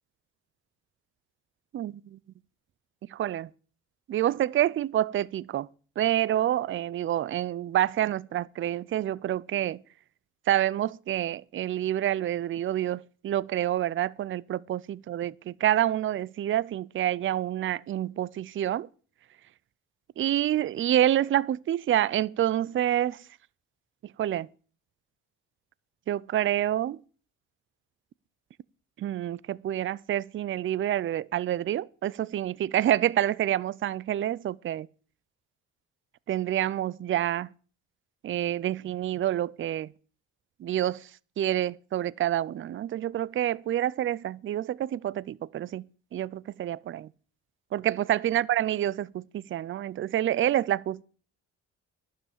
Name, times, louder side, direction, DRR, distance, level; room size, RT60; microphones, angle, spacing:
voice 1, 1.7-2.2 3.1-3.5 4.1-5.7 6.0-9.8 10.5-18.9 20.2-23.2 24.0-24.5 26.1-27.0 29.0-34.9 36.3-37.5 38.2-39.9 40.6-41.1 41.4-47.1 47.7-51.0, right 12 dB, 45° right, 0.4 m, -28 dB
12.0 x 5.7 x 8.5 m
cardioid pair, 90°, 30 cm